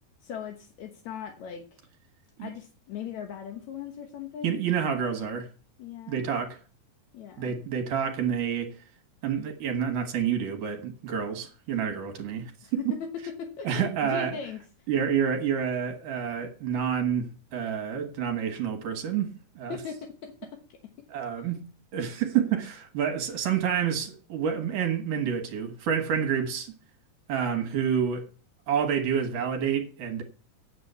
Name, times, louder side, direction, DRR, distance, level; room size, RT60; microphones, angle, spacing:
voice 1, 0.2-1.9 2.4-4.6 5.8-6.3 7.1-7.5 12.6-14.6 19.7-20.8, left 8 dB, 65° left, 2.1 m, -39 dB
voice 2, 4.4-5.5 6.1-6.6 7.4-8.8 9.2-12.5 13.6-14.4 14.9-19.8 21.1-21.7 21.9-26.7 27.3-28.3 28.7-30.2, right 8 dB, 65° right, 2.9 m, -28 dB
8.7 x 8.6 x 6.8 m
omnidirectional pair, 4.1 m